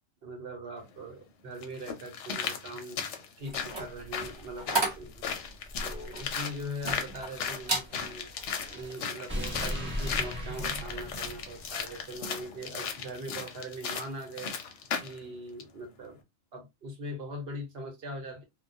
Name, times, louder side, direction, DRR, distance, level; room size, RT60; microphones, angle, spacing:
voice 1, 0.2-3.1 3.4-5.3 5.8-8.3 8.7-14.5 15.0-16.2 16.5-18.4, right 1 dB, 55° right, 1.0 m, -41 dB
sound 1, 0.8-0.9 1.6-15.2 15.6-15.7, left 6 dB, 65° left, 0.8 m, -36 dB
sound 2, 3.5-7.3 7.6-7.9 8.4-8.7, right 2 dB, 25° right, 0.7 m, -33 dB
sound 3, 7.3-12.1, equal, 10° right, 1.1 m, -38 dB
2.3 x 2.2 x 2.6 m
omnidirectional pair, 1.4 m